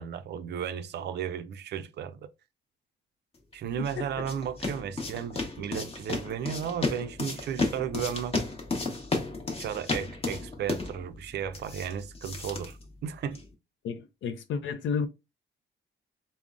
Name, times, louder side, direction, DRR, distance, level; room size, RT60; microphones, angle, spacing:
voice 1, 0.0-2.2 3.5-8.4 9.6-13.4, right 8 dB, 60° right, 0.4 m, -34 dB
sound 1, 3.5-13.5, left 3 dB, 30° left, 0.9 m, -34 dB
voice 2, 3.8-4.3 13.8-15.1, left 6 dB, 70° left, 0.5 m, -32 dB
3.6 x 2.0 x 2.3 m
cardioid pair, 90°, 20 cm